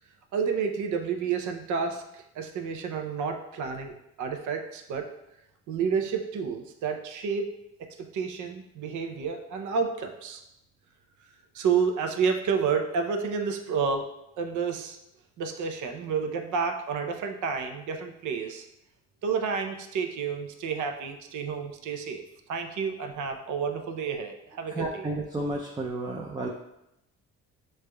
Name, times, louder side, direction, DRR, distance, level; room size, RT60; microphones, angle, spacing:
voice 1, 0.3-5.1 5.7-7.5 7.8-10.4 11.5-14.1 14.4-15.0 15.4-18.6 19.2-22.2 22.5-25.0, right 6 dB, 75° right, 5 dB, 0.6 m, -30 dB
voice 2, 24.7-26.5, right 2 dB, 15° right, -1 dB, 0.4 m, -32 dB
6.2 x 3.3 x 2.2 m, 0.85 s
cardioid pair, 90°, 30 cm